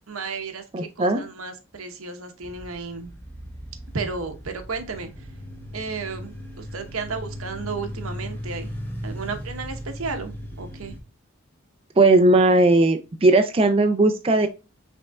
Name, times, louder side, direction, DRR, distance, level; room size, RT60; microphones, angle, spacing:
voice 1, 0.1-3.1 3.9-5.1 5.7-8.7 9.0-10.9, right 4 dB, 85° right, 7 dB, 1.0 m, -33 dB
voice 2, 0.7-1.2 12.0-14.5, right 2 dB, 25° right, 7 dB, 0.4 m, -17 dB
sound 1, 2.4-11.0, equal, 10° left, 0.9 m, -37 dB
5.3 x 3.6 x 2.3 m, 0.29 s
head